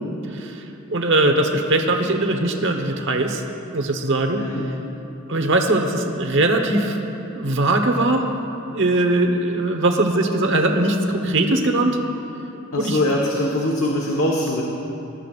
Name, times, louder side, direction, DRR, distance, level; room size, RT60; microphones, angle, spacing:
voice 1, 0.3-0.6 0.9-3.4 3.7-4.4 5.3-7.0 7.3-8.3 8.7-12.0 12.8-13.0, right 2 dB, 60° right, 4 dB, 1.1 m, -20 dB
voice 2, 12.7-14.6, left 1 dB, 80° left, -1 dB, 1.3 m, -22 dB
19.5 x 13.5 x 2.5 m, 3.0 s
head